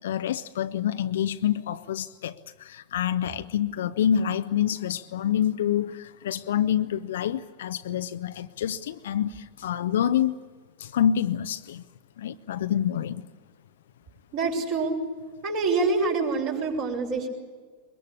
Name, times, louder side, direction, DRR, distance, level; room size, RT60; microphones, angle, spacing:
voice 1, 0.0-2.3 2.7-9.3 9.6-10.4 10.8-11.8 12.2-13.2, left 9 dB, 60° left, 11 dB, 0.7 m, -27 dB
voice 2, 14.3-15.0 15.4-17.3, right 4 dB, 45° right, 1 dB, 6.3 m, -26 dB
23.5 x 22.0 x 8.4 m, 1.5 s
figure-of-eight pair, 90°, 0 cm